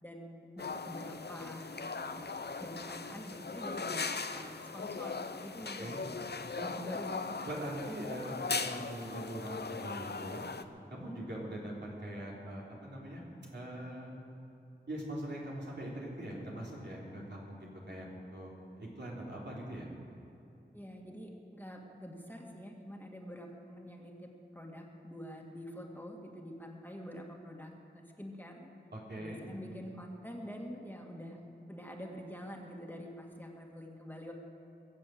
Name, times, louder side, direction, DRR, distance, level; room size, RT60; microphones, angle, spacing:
voice 1, 0.0-2.3 2.6-6.0 6.8-7.6 20.7-28.7 29.2-31.4 31.7-34.3, equal, 10° left, 0 dB, 2.0 m, -46 dB
sound 1, 0.6-10.6, left 4 dB, 60° left, 0.7 m, -39 dB
voice 2, 7.4-10.5 10.9-13.2 13.5-14.1 14.9-18.5 18.8-19.9 28.9-29.4, right 1 dB, 70° right, -5 dB, 3.8 m, -42 dB
21.5 x 7.7 x 7.9 m, 2.7 s
wide cardioid pair, 45°, 19 cm